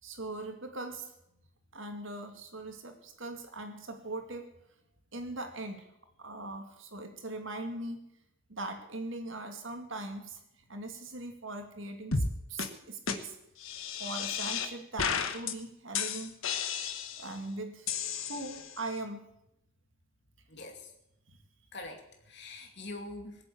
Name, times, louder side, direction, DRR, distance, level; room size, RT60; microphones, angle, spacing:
voice 1, 0.0-1.1 1.7-4.5 5.1-5.8 6.2-8.0 8.5-10.4 10.7-12.2 12.5-13.4 14.0-16.4 17.2-19.2, right 2 dB, 60° right, 5 dB, 2.3 m, -40 dB
sound 1, 12.1-12.3 12.6-12.7 13.1-13.2 13.6-14.7 15.0-15.5 15.9-17.3 17.9-18.8, left 6 dB, 70° left, 1.2 m, -33 dB
voice 2, 20.5-20.9 21.7-23.4, left 2 dB, 55° left, 4 dB, 2.5 m, -44 dB
19.0 x 7.9 x 8.7 m, 0.83 s
head